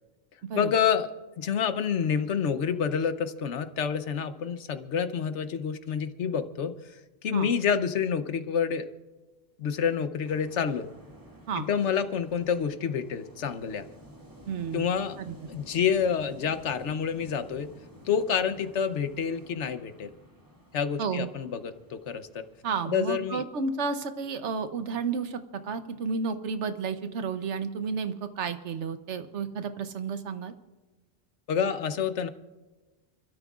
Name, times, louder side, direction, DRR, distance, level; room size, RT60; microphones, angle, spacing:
voice 1, 0.5-1.1 1.4-8.9 9.6-10.9 11.5-13.9 14.7-15.2 15.5-17.7 18.0-20.1 20.7-22.4 22.8-23.4 31.5-32.3, left 7 dB, 90° left, 10 dB, 1.1 m, -28 dB
sound 1, 10.2-23.3, equal, 15° right, 2.3 m, -52 dB
voice 2, 14.5-14.9 15.2-15.4 21.0-21.3 22.6-30.5, right 5 dB, 90° right, 10 dB, 1.2 m, -32 dB
29.5 x 13.0 x 2.4 m, 1.2 s
omnidirectional pair, 1.2 m